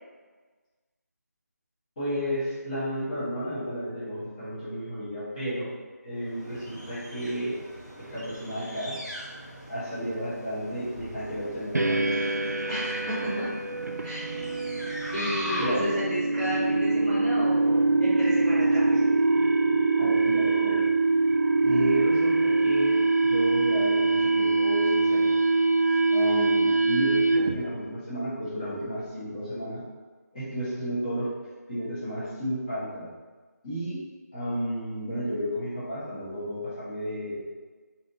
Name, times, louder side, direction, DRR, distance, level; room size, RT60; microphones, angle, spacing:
voice 1, 2.0-5.7 6.0-7.6 8.0-8.9 9.7-12.2 15.6-16.1 20.0-21.0 21.6-25.4 26.1-29.8 30.3-31.3 31.7-33.1 33.6-34.0 34.3-37.4, equal, 25° left, -13 dB, 1.4 m, -32 dB
sound 1, 6.2-16.0, equal, 80° left, 1.1 m, -41 dB
sound 2, 11.7-27.7, right 3 dB, 70° right, 0.4 m, -24 dB
voice 2, 12.7-13.5 14.0-14.2 15.1-19.1, equal, 10° right, -15 dB, 1.4 m, -32 dB
3.2 x 2.8 x 4.0 m, 1.4 s
figure-of-eight pair, 160°, 9 cm